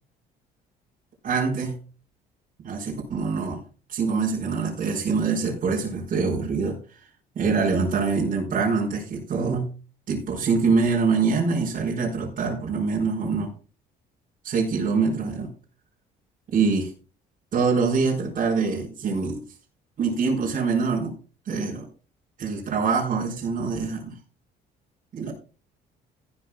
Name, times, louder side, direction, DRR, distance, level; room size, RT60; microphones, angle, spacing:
voice 1, 1.2-1.8 2.6-3.6 3.9-6.8 7.3-9.7 10.1-13.5 14.4-15.5 16.5-16.9 17.5-19.4 20.0-21.1 21.4-21.9 22.4-24.2 25.1-25.3, right 4 dB, 50° right, -2 dB, 4.8 m, -24 dB
14.5 x 12.0 x 2.3 m, 0.34 s
cardioid pair, 110°, 17 cm